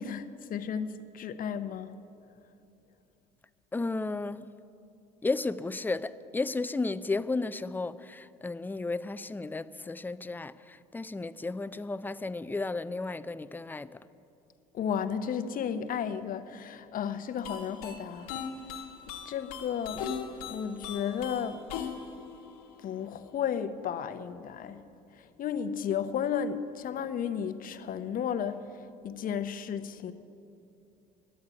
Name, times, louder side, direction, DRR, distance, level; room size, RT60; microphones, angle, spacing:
voice 1, 0.0-1.9 14.7-18.3 19.3-20.1 20.4-21.6 22.8-24.8 25.1-30.1, left 8 dB, 45° left, 0.8 m, -33 dB
voice 2, 3.7-4.5 5.2-14.0, left 3 dB, 10° left, 0.4 m, -33 dB
sound 1, 17.4-23.3, left 7 dB, 80° left, 1.1 m, -40 dB
11.5 x 8.8 x 9.6 m
hypercardioid pair, 70°, 19 cm